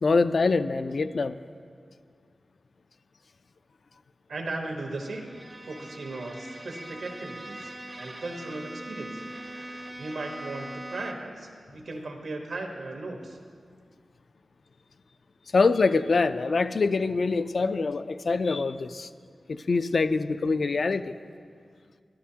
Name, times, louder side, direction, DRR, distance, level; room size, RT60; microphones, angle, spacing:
voice 1, 0.0-1.3 15.5-19.1 19.5-21.1, left 4 dB, 60° left, 12 dB, 0.3 m, -24 dB
voice 2, 4.3-5.3 5.7-9.2 10.0-13.4, right 2 dB, 85° right, 2 dB, 1.2 m, -37 dB
Bowed string instrument, 5.0-11.4, right 1 dB, 20° right, 0.5 m, -42 dB
12.5 x 12.0 x 2.8 m, 2.1 s
wide cardioid pair, 110°, 0 cm